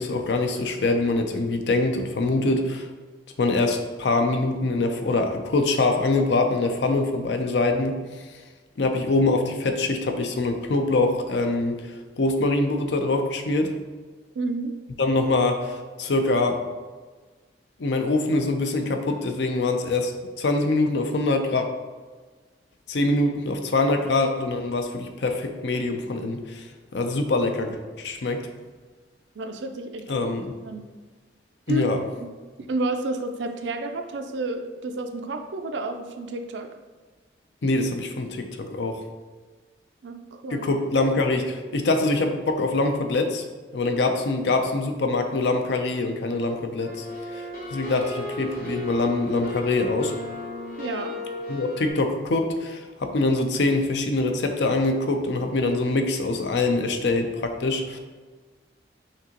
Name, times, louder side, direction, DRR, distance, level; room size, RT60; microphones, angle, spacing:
voice 1, 0.0-2.9 3.4-7.9 8.8-11.8 12.2-13.7 15.0-16.6 17.8-20.1 20.4-21.7 22.9-26.6 26.9-28.4 30.1-30.5 31.7-32.0 37.6-39.0 40.5-43.4 43.7-47.1 47.7-50.1 51.5-58.0, left 2 dB, 75° left, 5 dB, 0.5 m, -24 dB
voice 2, 14.3-14.8 29.4-30.2 30.6-30.9 31.7-31.9 32.2-32.3 32.7-36.8 40.0-40.7 50.8-51.2, right 2 dB, 80° right, 6 dB, 0.4 m, -30 dB
sound 1, 46.8-51.9, left 1 dB, 50° left, 1.2 m, -35 dB
5.9 x 2.8 x 2.9 m, 1.4 s
head